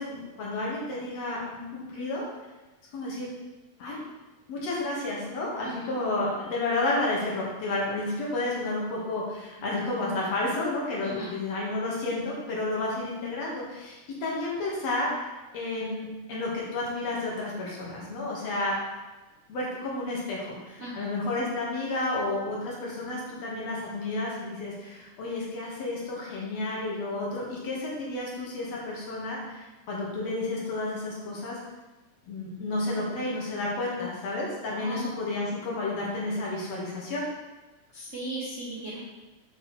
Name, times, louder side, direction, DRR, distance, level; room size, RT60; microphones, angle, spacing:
voice 1, 0.0-2.2 2.9-3.3 3.8-4.0 4.5-15.1 15.5-18.8 19.5-31.6 32.3-37.3, left 2 dB, 60° left, -5 dB, 2.4 m, -31 dB
voice 2, 5.6-6.0 11.0-11.3 20.8-21.1 34.7-35.1 37.9-39.0, right 1 dB, 75° right, -8 dB, 0.6 m, -37 dB
7.8 x 3.3 x 4.3 m, 1.1 s
omnidirectional pair, 3.5 m